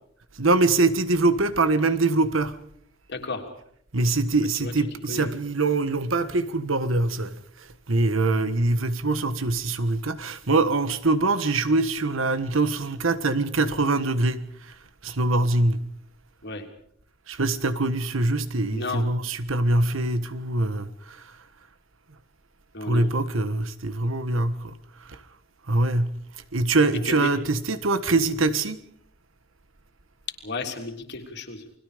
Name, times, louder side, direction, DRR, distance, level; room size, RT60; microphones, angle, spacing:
voice 1, 0.3-2.6 3.9-15.8 17.3-21.4 22.8-25.2 25.7-26.1 26.5-28.8, right 2 dB, 75° right, 1.4 m, -24 dB
voice 2, 3.1-3.4 4.6-4.7 5.1-5.3 16.4-16.6 18.7-19.1 22.7-23.1 27.0-27.3 30.4-31.6, left 3 dB, 60° left, 3.4 m, -33 dB
30.0 x 21.5 x 5.1 m
head